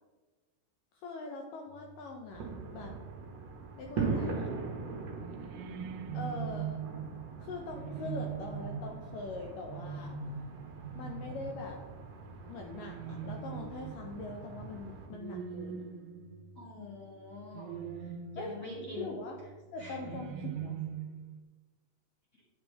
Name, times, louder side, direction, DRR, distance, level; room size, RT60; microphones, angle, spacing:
voice 1, 0.9-3.0 3.7-4.5 6.1-6.8 7.4-10.1 11.0-11.8 12.5-15.8 18.4-18.5 19.0-19.4 19.7-20.8, left 3 dB, 80° left, 2 dB, 2.0 m, -42 dB
sound 1, 1.7-20.5, right 2 dB, 5° left, 2.2 m, -57 dB
sound 2, 2.3-15.1, right 4 dB, 60° right, 1.8 m, -41 dB
sound 3, 5.2-16.8 17.5-18.9 19.8-21.4, right 7 dB, 80° right, 2.0 m, -42 dB
voice 2, 16.5-19.2 19.8-20.1 22.3-22.4, left 1 dB, 45° left, -5 dB, 1.0 m, -45 dB
9.4 x 8.0 x 3.3 m, 1.3 s
omnidirectional pair, 4.6 m